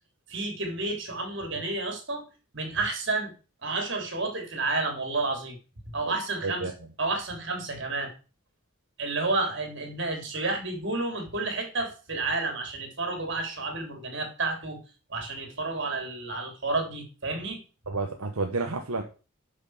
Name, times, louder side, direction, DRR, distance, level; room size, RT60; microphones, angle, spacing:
voice 1, 0.3-2.2 2.5-3.3 3.6-5.6 5.9-6.7 7.0-8.1 9.0-14.8 15.1-17.6, right 3 dB, 55° right, 3 dB, 3.6 m, -30 dB
voice 2, 17.9-19.0, right 3 dB, 80° right, 3 dB, 1.3 m, -30 dB
11.0 x 6.4 x 5.0 m, 0.34 s
head